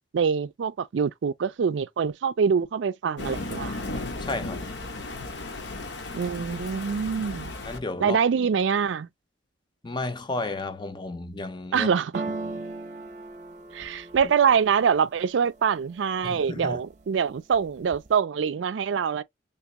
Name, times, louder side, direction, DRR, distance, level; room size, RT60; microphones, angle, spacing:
voice 1, 0.1-3.8 6.1-7.5 8.0-9.1 11.7-12.2 13.7-19.2, right 6 dB, 85° right, 0.4 m, -24 dB
Thunder, 3.2-7.8, left 2 dB, 70° left, 0.7 m, -35 dB
voice 2, 4.2-4.6 7.6-8.2 9.8-11.9 16.2-16.8, left 2 dB, 25° left, 0.5 m, -32 dB
sound 1, 12.1-16.0 16.5-17.1 17.4-18.1, right 3 dB, 40° right, 0.6 m, -38 dB
3.4 x 2.9 x 2.9 m
head